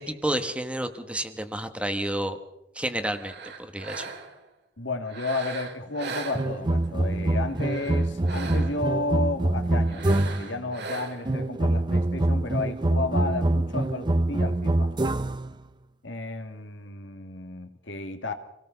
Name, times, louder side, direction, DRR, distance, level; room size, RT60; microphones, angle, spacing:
voice 1, 0.0-2.4 2.7-4.1, right 1 dB, 5° right, 8 dB, 1.2 m, -30 dB
sound 1, 3.0-4.5 5.0-6.9 7.4-8.9 9.8-11.4, right 4 dB, 60° right, 2.5 m, -39 dB
voice 2, 4.8-14.9 16.0-18.3, left 2 dB, 70° left, 6 dB, 2.1 m, -32 dB
sound 2, 6.3-10.6 11.3-15.5, right 1 dB, 25° right, 0.7 m, -25 dB
25.5 x 18.0 x 5.8 m, 0.89 s
head